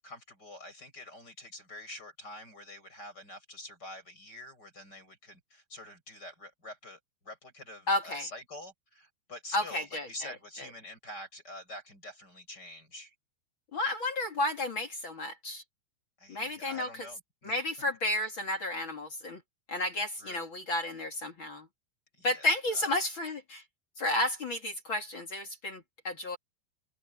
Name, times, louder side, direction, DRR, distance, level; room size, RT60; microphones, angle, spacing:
voice 1, 0.0-13.1 16.2-17.5 20.2-20.5 22.1-22.5 22.7-22.9, left 1 dB, 20° left, 8.4 m, -46 dB
voice 2, 7.9-8.3 9.5-10.3 13.7-15.6 16.3-17.1 17.4-19.4 19.7-21.7 22.2-23.6 24.0-26.4, left 1 dB, 35° left, 2.1 m, -32 dB
omnidirectional pair, 5.2 m